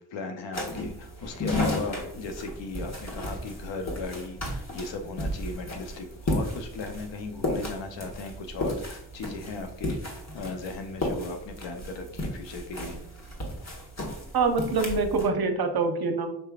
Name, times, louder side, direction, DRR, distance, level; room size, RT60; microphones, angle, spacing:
voice 1, 0.1-13.0, left 3 dB, 70° left, 5 dB, 0.8 m, -37 dB
sound 1, 0.5-15.3, left 1 dB, 35° left, 1.4 m, -34 dB
voice 2, 14.3-16.4, right 4 dB, 55° right, 6 dB, 0.8 m, -25 dB
5.3 x 3.3 x 2.4 m, 0.72 s
supercardioid pair, 50°, 46 cm